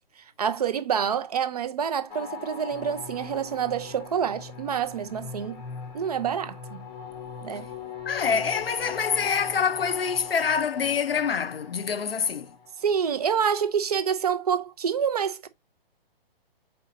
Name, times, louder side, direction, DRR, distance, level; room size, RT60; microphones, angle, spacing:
voice 1, 0.4-5.6 5.9-6.8 7.4-7.7 12.8-15.5, right 7 dB, 40° right, 0.5 m, -27 dB
sound 1, 2.1-13.2, left 6 dB, 10° left, 0.7 m, -40 dB
voice 2, 8.1-12.5, left 6 dB, 70° left, 0.6 m, -26 dB
4.3 x 4.0 x 2.5 m
figure-of-eight pair, 125°, 30 cm